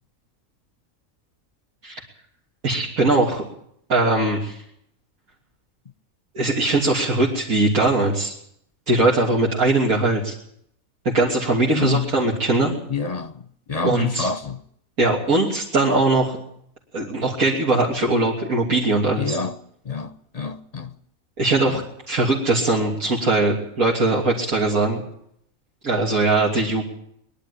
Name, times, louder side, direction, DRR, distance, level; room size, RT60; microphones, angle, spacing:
voice 1, 2.6-3.4 3.9-4.6 6.4-8.3 8.9-10.3 11.1-12.8 13.8-14.3 15.0-16.4 16.9-19.4 21.4-21.8 22.1-25.0 25.8-26.8, right 2 dB, 80° right, 3.5 m, -20 dB
voice 2, 11.7-12.1 12.9-13.3 13.7-14.6 19.2-19.6 19.8-20.9 21.7-21.8, left 5 dB, 30° left, 0.9 m, -27 dB
22.0 x 12.0 x 9.9 m
omnidirectional pair, 1.5 m